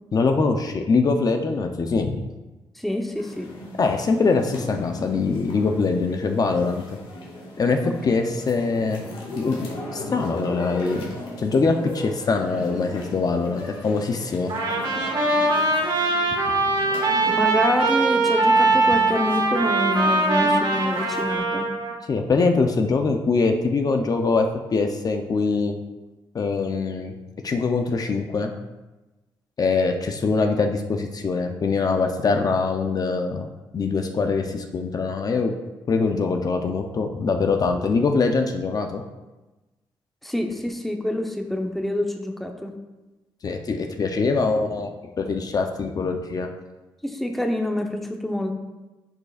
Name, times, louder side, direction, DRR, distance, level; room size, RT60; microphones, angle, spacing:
voice 1, 0.1-2.3 3.8-6.8 7.6-9.0 9.4-14.5 16.4-16.5 22.1-24.5 24.7-25.7 26.3-27.1 27.4-28.5 29.6-33.5 33.7-35.5 35.9-39.0 43.4-44.9 45.2-46.5, left 4 dB, 45° left, 4 dB, 0.6 m, -23 dB
voice 2, 2.8-3.5 7.8-8.0 17.3-21.7 40.2-42.7 47.0-48.5, left 1 dB, ahead, 3 dB, 0.8 m, -26 dB
sound 1, 3.2-21.4, left 1 dB, 75° left, 2.0 m, -38 dB
Trumpet, 14.5-22.0, right 2 dB, 60° right, 1.5 m, -21 dB
10.5 x 5.4 x 2.4 m, 1.1 s
cardioid pair, 85°, 9 cm